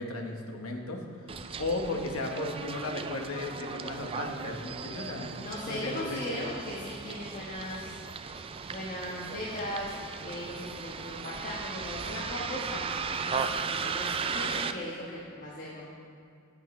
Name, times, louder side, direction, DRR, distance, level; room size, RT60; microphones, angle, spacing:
voice 1, 0.0-5.3 5.7-6.2, left 2 dB, 65° left, 2 dB, 1.2 m, -35 dB
Bus, 1.3-14.7, right 5 dB, 25° right, 0.3 m, -36 dB
voice 2, 5.3-8.4 8.7-15.9, left 1 dB, 35° left, -5 dB, 1.3 m, -38 dB
14.5 x 8.6 x 3.2 m, 2.4 s
head